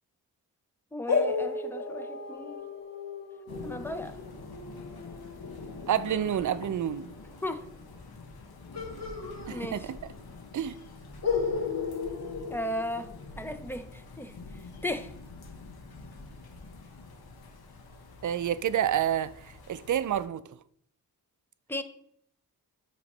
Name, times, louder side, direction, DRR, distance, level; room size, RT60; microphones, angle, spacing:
voice 1, 0.9-2.6 3.6-4.2 7.4-7.6 9.5-9.9 12.5-13.1 13.4-14.3 14.8-15.1 21.7-21.8, left 1 dB, 5° left, 0.7 m, -35 dB
sound 1, 1.1-6.5 8.7-10.2 10.5-10.6 11.2-13.4, left 4 dB, 45° left, 1.7 m, -34 dB
sound 2, 3.5-20.3, left 3 dB, 80° left, 1.0 m, -46 dB
voice 2, 5.9-7.1 9.5-10.0 10.5-10.7 18.2-20.4, right 10 dB, 55° right, 0.5 m, -29 dB
8.5 x 3.1 x 5.4 m
cardioid pair, 60°, 36 cm